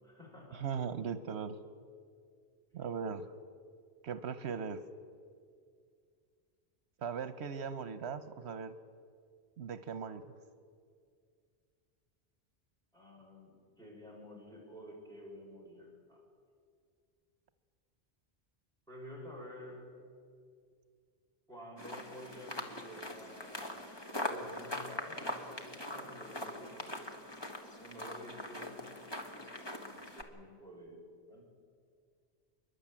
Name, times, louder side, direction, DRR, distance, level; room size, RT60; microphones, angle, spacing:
voice 1, 0.0-1.0 12.9-16.2 18.9-20.0 21.5-24.0 24.2-27.0 27.8-28.9 29.7-31.4, equal, 5° left, -4 dB, 5.9 m, -51 dB
voice 2, 0.5-1.6 2.7-3.3 4.0-4.8 7.0-8.7 9.6-10.2, right 6 dB, 80° right, 12 dB, 1.1 m, -39 dB
sound 1, 21.8-30.2, left 1 dB, 25° left, 1.6 m, -42 dB
29.0 x 11.5 x 8.8 m, 2.2 s
omnidirectional pair, 1.1 m